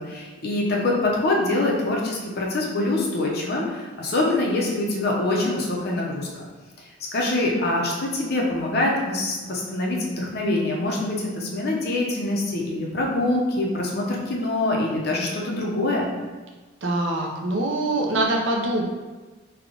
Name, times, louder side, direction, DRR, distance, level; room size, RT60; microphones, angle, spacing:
voice 1, 0.0-6.3 7.1-16.1, left 2 dB, 50° left, -2 dB, 0.7 m, -24 dB
voice 2, 16.8-18.8, right 1 dB, 65° right, -1 dB, 0.6 m, -24 dB
3.5 x 2.3 x 3.7 m, 1.3 s
head